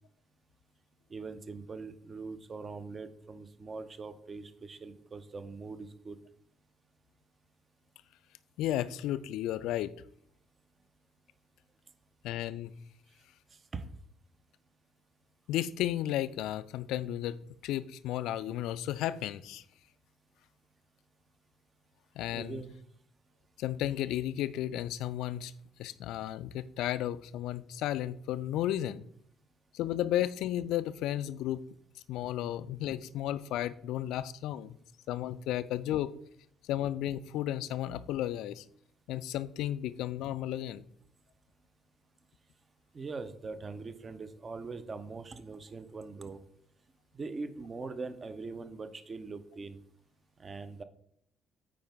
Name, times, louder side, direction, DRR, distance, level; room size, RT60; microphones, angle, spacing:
voice 1, 1.1-6.2 13.7-13.9 22.3-22.7 42.9-46.4 47.1-49.8 50.4-50.8, right 4 dB, 35° right, 11 dB, 0.7 m, -42 dB
voice 2, 8.6-9.9 12.2-12.7 15.5-17.4 17.6-19.6 22.2-22.6 23.6-25.5 25.8-29.0 29.7-31.6 32.1-34.8 35.1-36.1 36.7-38.6 39.1-40.8, left 12 dB, 60° left, 16 dB, 0.3 m, -33 dB
8.8 x 4.8 x 3.5 m, 0.67 s
figure-of-eight pair, 45°, 0 cm